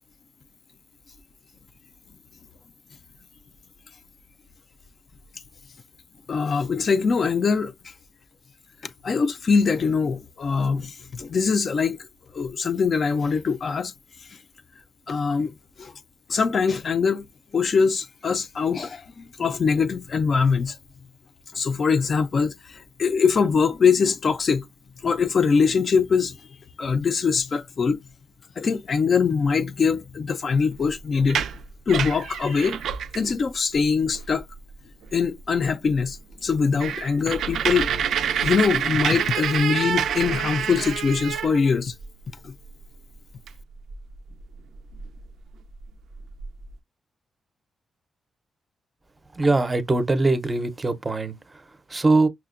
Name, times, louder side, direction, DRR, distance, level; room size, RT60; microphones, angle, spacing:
voice 1, 6.3-7.9 9.0-12.0 12.3-13.9 14.3-14.4 15.1-15.5 15.8-15.9 16.3-17.3 17.5-20.8 21.5-24.7 25.0-26.4 26.8-28.0 28.6-31.4 31.9-32.8 33.1-34.5 35.1-37.9 38.2-41.9 42.4-42.5, left 5 dB, 45° left, 0.3 m, -23 dB
sound 1, 31.2-33.3 33.7-33.8 34.1-34.5 35.0-35.1 35.5-35.6 36.0-36.1 36.4-42.0 43.5-43.6 43.9-45.2 45.8-45.9 46.1-46.7, right 8 dB, 90° right, 0.3 m, -27 dB
voice 2, 49.3-52.3, right 2 dB, 25° right, 0.5 m, -22 dB
5.6 x 2.1 x 2.4 m
cardioid pair, 115°, 0 cm